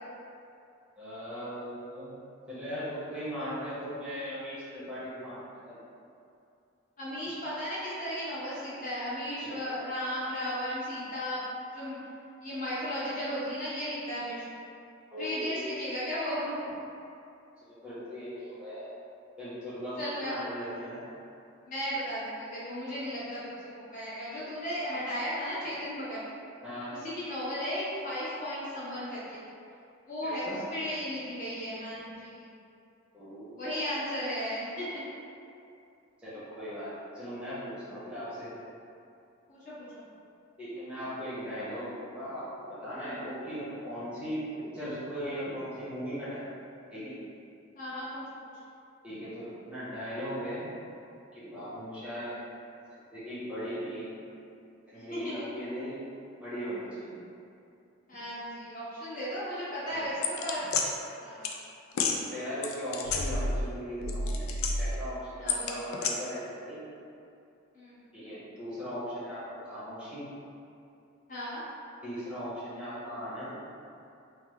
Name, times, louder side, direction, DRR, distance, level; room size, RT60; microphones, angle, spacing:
voice 1, 1.0-2.1 2.5-5.4 5.7-5.8 9.4-9.7 15.1-15.9 17.7-18.9 19.4-21.0 26.6-26.9 30.2-30.7 33.1-33.8 36.2-38.5 40.6-46.4 46.9-47.1 49.0-50.7 51.3-52.3 53.1-54.1 54.9-56.0 56.4-57.2 59.9-60.2 62.3-64.4 64.8-66.8 68.1-70.2 72.0-73.6, equal, 5° right, -11 dB, 0.8 m, -38 dB
voice 2, 7.0-11.4 11.7-12.0 12.4-14.4 15.2-16.5 20.0-20.4 21.7-26.2 26.9-29.4 30.1-32.5 33.6-35.0 39.5-40.0 47.8-48.2 54.9-55.3 58.1-60.7 61.2-61.5 65.3-65.9 67.7-68.0 71.3-71.6, equal, 35° left, -10 dB, 0.9 m, -35 dB
sound 1, 60.2-60.9 61.4-61.6 61.9-62.2 62.6-63.7 64.0-65.0 65.5-66.1, left 4 dB, 75° left, 0.3 m, -29 dB
3.3 x 2.1 x 3.1 m, 2.6 s
head